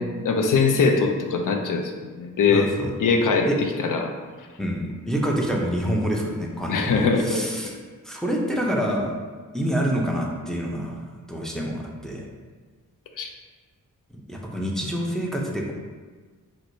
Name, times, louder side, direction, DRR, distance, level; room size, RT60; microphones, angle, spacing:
voice 1, 0.0-2.7 3.0-3.5 3.8-4.1 6.7-7.5 13.2-13.3, left 4 dB, 70° left, 4 dB, 0.5 m, -22 dB
voice 2, 2.5-2.9 3.5-3.6 4.6-7.7 8.0-9.1 9.5-11.0 11.3-12.3 14.3-15.7, equal, ahead, -1 dB, 0.5 m, -27 dB
4.4 x 2.1 x 2.6 m, 1.4 s
wide cardioid pair, 75°, 33 cm